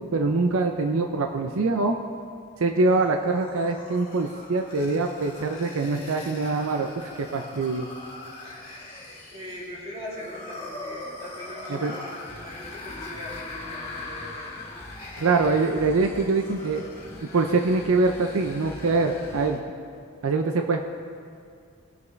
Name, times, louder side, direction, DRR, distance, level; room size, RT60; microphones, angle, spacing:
voice 1, 0.0-2.0 2.6-7.9 11.7-12.0 15.2-16.8 17.3-19.6 20.2-20.8, right 3 dB, 85° right, 4 dB, 0.6 m, -24 dB
sound 1, 2.8-19.5, left 2 dB, 25° left, 2.1 m, -42 dB
voice 2, 8.4-14.6 16.2-16.4, equal, 30° right, -7 dB, 3.0 m, -41 dB
sound 2, 12.3-19.6, left 1 dB, 10° left, 0.8 m, -45 dB
20.0 x 6.9 x 3.2 m, 2.3 s
head